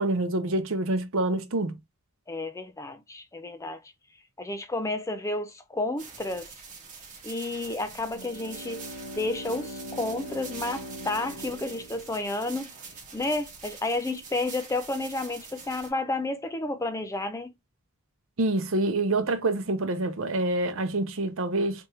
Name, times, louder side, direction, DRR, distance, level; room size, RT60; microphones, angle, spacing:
voice 1, 0.0-1.7 18.4-21.9, right 2 dB, 60° right, 0.7 m, -26 dB
voice 2, 2.3-3.8 4.4-6.5 7.2-8.9 9.2-12.7 13.1-17.5, left 2 dB, 15° left, 0.4 m, -31 dB
sound 1, 6.0-15.9, right 5 dB, 35° right, 1.5 m, -45 dB
Bowed string instrument, 7.9-12.7, equal, 45° left, 1.3 m, -41 dB
3.4 x 3.2 x 2.9 m
head